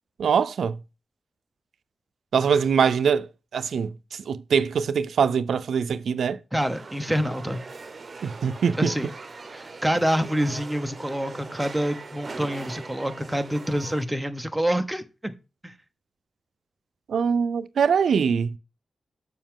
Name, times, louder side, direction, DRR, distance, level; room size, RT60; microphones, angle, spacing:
voice 1, 0.2-0.8 2.3-3.9 4.3-6.4 8.2-8.9 17.1-18.6, right 6 dB, 85° right, 0.5 m, -23 dB
voice 2, 6.5-7.6 8.8-9.1 9.5-15.3 15.6-15.7, equal, 5° right, 0.8 m, -26 dB
sound 1, 6.6-14.0, right 3 dB, 35° right, 0.9 m, -41 dB
7.3 x 5.7 x 3.7 m
wide cardioid pair, 145°, 0 cm